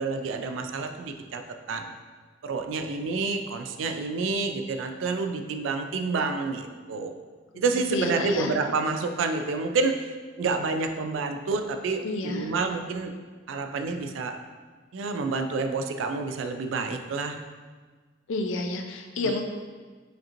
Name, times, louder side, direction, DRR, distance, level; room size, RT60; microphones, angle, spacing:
voice 1, 0.0-1.9 2.4-7.1 7.6-13.1 13.5-14.4 14.9-17.4 19.2-19.3, right 4 dB, 90° right, 6 dB, 0.3 m, -29 dB
voice 2, 7.9-8.6 12.0-12.5 18.3-19.4, left 3 dB, 90° left, 4 dB, 0.4 m, -30 dB
5.0 x 2.6 x 2.9 m, 1.4 s
head